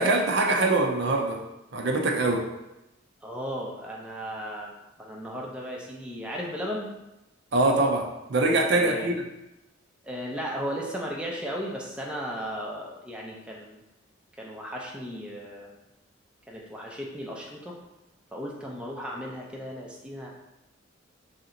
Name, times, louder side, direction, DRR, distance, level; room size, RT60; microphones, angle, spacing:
voice 1, 0.0-1.4 1.7-2.5 7.5-9.2, right 2 dB, 55° right, 2 dB, 0.5 m, -23 dB
voice 2, 3.2-4.7 5.0-6.9 8.7-9.1 10.0-13.8 14.4-15.7 16.5-17.7 18.3-20.3, equal, 5° right, -3 dB, 0.4 m, -35 dB
3.2 x 2.8 x 3.8 m, 0.91 s
head